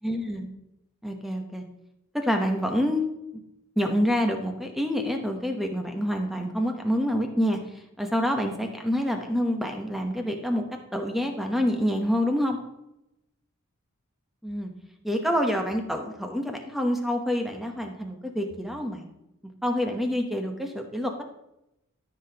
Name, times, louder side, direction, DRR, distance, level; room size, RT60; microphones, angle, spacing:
voice 1, 0.0-0.5 1.0-1.6 2.1-3.0 3.8-7.6 8.0-10.6 10.9-12.6 14.4-14.7 15.0-19.1 19.6-21.2, equal, ahead, 3 dB, 0.9 m, -27 dB
13.5 x 5.9 x 2.9 m, 0.87 s
head